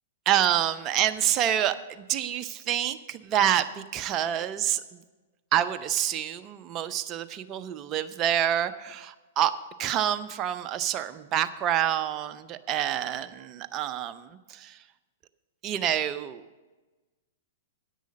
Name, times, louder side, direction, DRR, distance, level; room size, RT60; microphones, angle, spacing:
voice 1, 0.3-5.0 5.5-9.5 9.8-14.8 15.6-16.4, right 11 dB, 30° right, 11 dB, 0.6 m, -27 dB
10.0 x 8.4 x 6.3 m, 1.2 s
figure-of-eight pair, 105°, 0 cm